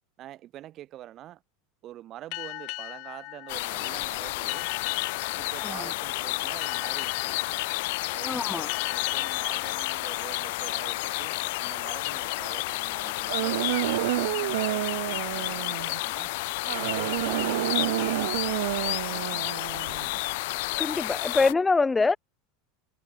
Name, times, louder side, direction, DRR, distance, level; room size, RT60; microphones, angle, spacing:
voice 1, 0.2-1.4 1.8-4.7 5.4-7.3 8.1-16.3 16.6-19.9, right 13 dB, 40° right, 7.6 m, -46 dB
sound 1, 2.3-11.5, left 25 dB, 55° left, 3.3 m, -40 dB
sound 2, 3.5-21.5, left 22 dB, 70° left, 0.4 m, -31 dB
voice 2, 8.2-8.7 20.8-22.2, left 4 dB, 10° left, 0.6 m, -25 dB
sound 3, 13.3-16.0 16.7-20.2, right 18 dB, 75° right, 0.4 m, -29 dB
supercardioid pair, 135°, 0 cm